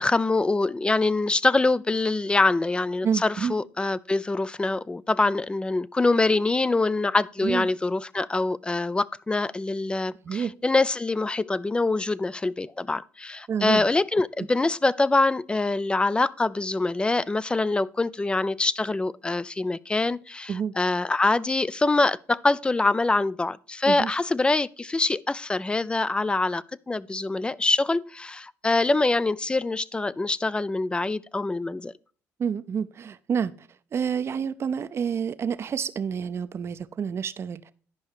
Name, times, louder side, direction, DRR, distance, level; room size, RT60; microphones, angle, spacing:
voice 1, 0.0-31.9, left 3 dB, 15° left, 0.4 m, -24 dB
voice 2, 3.0-3.5 7.4-7.7 10.2-10.5 13.5-13.9 20.5-20.7 23.9-24.1 32.4-37.7, right 7 dB, 45° right, 0.6 m, -28 dB
10.5 x 5.4 x 4.8 m
supercardioid pair, 85°, 6 cm